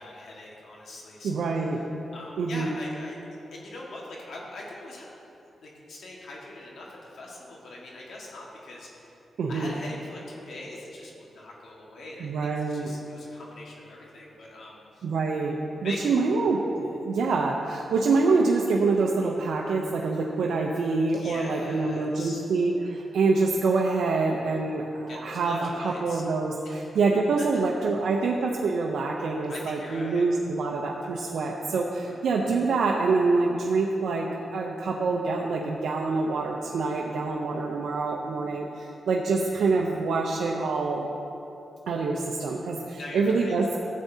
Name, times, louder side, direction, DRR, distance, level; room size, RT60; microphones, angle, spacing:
voice 1, 0.0-1.6 2.1-3.1 3.5-5.1 5.6-9.1 9.5-15.0 15.8-16.1 21.1-22.4 25.1-26.2 26.6-26.9 27.4-27.5 29.5-30.3 32.0-32.2 42.5-42.6 42.9-43.6, left 2 dB, 75° left, -3 dB, 1.6 m, -42 dB
voice 2, 1.2-1.8 2.4-2.7 9.4-9.7 12.2-12.9 15.0-41.1 41.9-43.8, right 3 dB, 85° right, -1 dB, 0.6 m, -26 dB
13.0 x 8.3 x 2.8 m, 2.8 s
cardioid pair, 70°, 0 cm